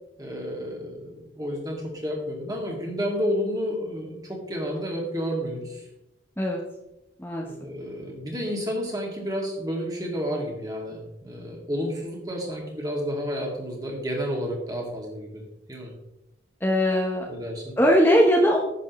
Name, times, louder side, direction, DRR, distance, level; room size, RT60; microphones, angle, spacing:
voice 1, 0.2-5.8 7.4-15.4 15.7-15.9 17.3-17.8, equal, 20° right, -1 dB, 2.4 m, -31 dB
voice 2, 16.6-17.3 17.8-18.6, equal, 10° left, -1 dB, 1.0 m, -20 dB
11.0 x 8.3 x 3.1 m, 0.89 s
head